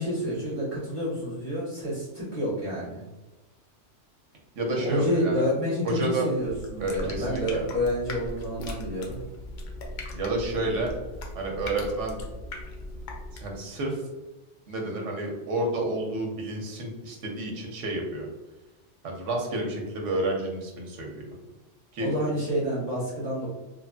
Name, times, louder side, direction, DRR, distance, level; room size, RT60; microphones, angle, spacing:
voice 1, 0.0-3.0 4.8-9.2 22.0-23.5, equal, 20° left, -10 dB, 1.2 m, -29 dB
voice 2, 4.6-5.3 5.8-6.3 6.8-7.6 10.1-10.9 11.3-12.2 13.3-14.0 14.7-18.3 19.0-21.4 21.9-22.3, right 2 dB, 85° right, 1 dB, 1.0 m, -30 dB
sound 1, 6.4-13.6, left 1 dB, 60° left, 0.5 m, -39 dB
3.0 x 2.5 x 2.2 m, 1.1 s
omnidirectional pair, 1.2 m